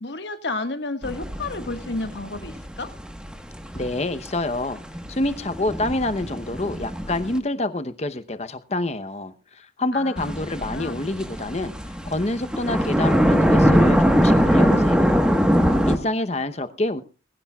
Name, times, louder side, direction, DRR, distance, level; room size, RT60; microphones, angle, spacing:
voice 1, 0.0-2.9 9.9-10.3 10.6-11.0, left 2 dB, 70° left, 1.6 m, -31 dB
sound 1, 1.0-7.4 10.2-16.0, equal, 5° right, 1.3 m, -22 dB
voice 2, 3.7-4.8 5.1-11.7 12.0-15.3 15.9-17.0, left 2 dB, 35° left, 0.9 m, -27 dB
20.5 x 16.0 x 2.4 m
head